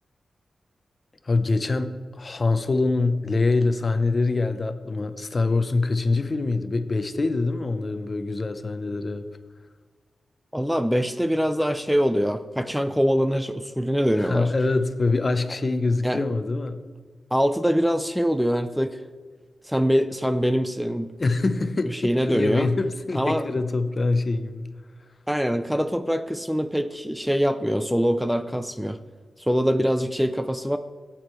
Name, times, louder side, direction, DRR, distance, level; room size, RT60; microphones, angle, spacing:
voice 1, 1.2-9.2 14.2-16.8 21.2-24.7, left 3 dB, 40° left, 10 dB, 0.7 m, -24 dB
voice 2, 10.5-14.5 16.0-16.2 17.3-19.0 19.6-21.1 21.9-22.7 23.1-23.4 25.3-29.0 29.4-30.8, equal, ahead, 10 dB, 0.4 m, -23 dB
13.0 x 8.7 x 3.2 m, 1.5 s
cardioid pair, 85°, 0 cm